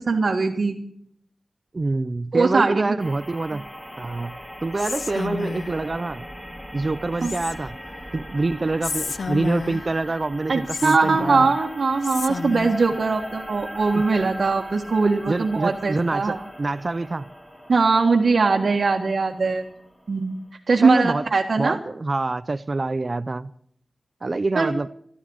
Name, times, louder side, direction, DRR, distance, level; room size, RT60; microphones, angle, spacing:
voice 1, 0.1-0.8 2.3-2.9 7.2-7.3 10.5-16.4 17.7-19.6 20.1-20.4 20.7-21.8 24.5-24.7, right 4 dB, 70° right, 1.5 m, -21 dB
voice 2, 1.7-3.6 4.0-6.3 6.7-7.8 8.1-11.6 13.9-14.0 15.3-17.3 20.8-21.2 21.6-23.5 24.2-24.9, right 3 dB, 45° right, 0.5 m, -26 dB
sound 1, 3.0-20.5, equal, 10° left, 2.9 m, -40 dB
Whispering, 4.8-5.9 7.2-7.9 8.8-10.0 10.7-11.6 12.0-12.9, left 4 dB, 80° left, 0.5 m, -32 dB
15.0 x 12.5 x 6.3 m
wide cardioid pair, 90°, 0 cm